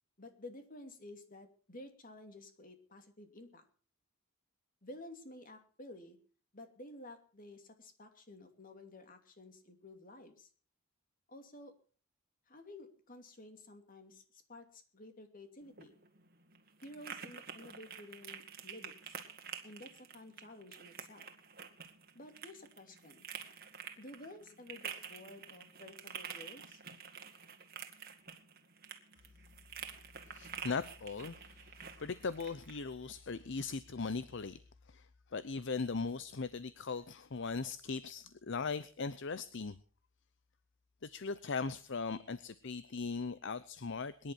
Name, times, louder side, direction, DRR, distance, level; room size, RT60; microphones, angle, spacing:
voice 1, 0.2-3.6 4.8-6.2 6.5-10.5 11.3-11.7 12.5-16.0 16.8-19.2 19.6-21.3 22.1-23.3 24.0-26.8, left 1 dB, 40° left, 7 dB, 2.8 m, -52 dB
sound 1, 15.6-32.8, right 7 dB, 45° right, 1.9 m, -49 dB
voice 2, 30.3-34.6 34.9-39.8 41.0-44.3, left 4 dB, 55° left, 15 dB, 0.7 m, -39 dB
22.5 x 11.0 x 4.3 m, 0.40 s
head